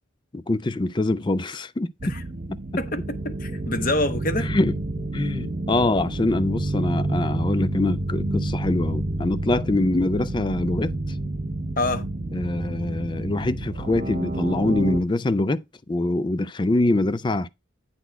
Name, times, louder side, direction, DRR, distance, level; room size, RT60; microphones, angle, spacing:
voice 1, 0.3-1.9 2.5-2.6 4.4-4.8 5.1-11.0 12.3-17.5, left 2 dB, 25° left, 0.4 m, -24 dB
sound 1, 2.0-15.0, right 2 dB, 40° right, 0.7 m, -29 dB
voice 2, 2.8-4.5 11.8-12.0, left 2 dB, 45° left, 1.1 m, -26 dB
9.3 x 4.2 x 4.5 m
head